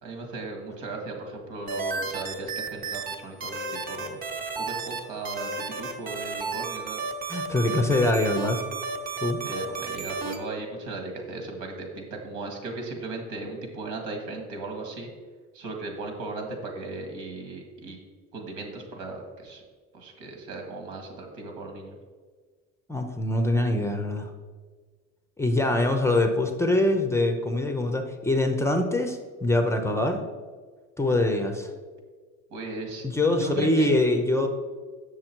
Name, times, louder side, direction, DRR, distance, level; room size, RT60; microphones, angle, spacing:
voice 1, 0.0-4.2 4.6-7.0 9.4-15.1 15.5-18.0 18.3-19.6 19.9-22.0 32.5-33.1 33.4-33.9, right 3 dB, 90° right, 2 dB, 2.1 m, -36 dB
sound 1, 1.7-3.1 3.4-5.0 5.2-10.4, right 4 dB, 30° right, 1.0 m, -32 dB
voice 2, 7.3-8.6 9.2-9.4 22.9-24.3 25.4-30.2 31.0-31.7 33.0-34.5, left 1 dB, 10° left, 5 dB, 0.5 m, -24 dB
7.7 x 6.4 x 4.5 m, 1.5 s
cardioid pair, 155°, 30 cm